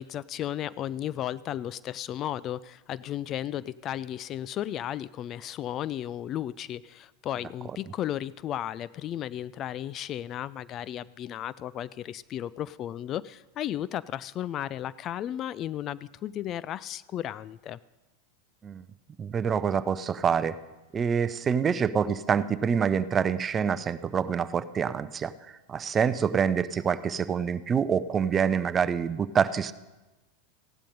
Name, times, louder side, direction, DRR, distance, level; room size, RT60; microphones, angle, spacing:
voice 1, 0.0-17.8, left 11 dB, 40° left, 19 dB, 0.4 m, -34 dB
voice 2, 19.2-20.6 20.9-25.3 25.7-29.7, right 7 dB, 25° right, 15 dB, 0.6 m, -26 dB
15.5 x 11.5 x 5.3 m, 1.1 s
hypercardioid pair, 95°, 0 cm